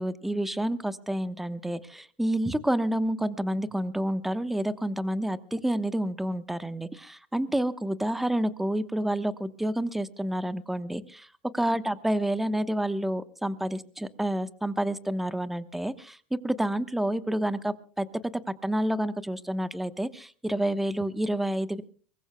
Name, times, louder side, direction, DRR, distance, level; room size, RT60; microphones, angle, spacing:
voice 1, 0.0-11.3 11.5-18.1 18.6-21.8, right 1 dB, 5° right, 13 dB, 1.0 m, -29 dB
24.0 x 21.0 x 2.2 m, 0.41 s
hypercardioid pair, 100°, 5 cm